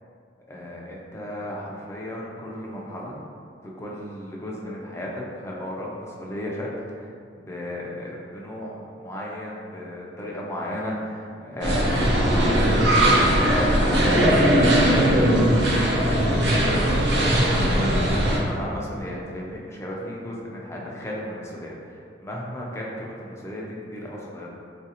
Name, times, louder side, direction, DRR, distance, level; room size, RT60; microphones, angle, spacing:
voice 1, 0.5-3.2 3.8-6.7 7.0-7.1 7.4-15.2 15.7-24.5, left 1 dB, 15° left, -4 dB, 0.4 m, -34 dB
sound 1, 11.6-18.4, right 1 dB, 70° right, 0.6 m, -19 dB
3.8 x 2.5 x 2.8 m, 2.4 s
head